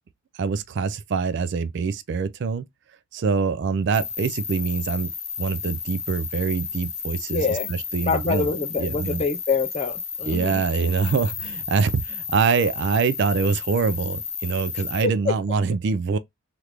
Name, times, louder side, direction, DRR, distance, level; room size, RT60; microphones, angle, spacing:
voice 1, 0.3-2.6 3.1-5.1 5.4-8.5 8.8-9.2 10.3-16.2, right 5 dB, 50° right, 0.3 m, -24 dB
sound 1, 3.9-15.0, left 6 dB, 70° left, 0.7 m, -33 dB
voice 2, 7.3-7.7 8.0-10.6 15.0-15.3, left 4 dB, 30° left, 0.3 m, -25 dB
3.3 x 2.5 x 2.9 m
head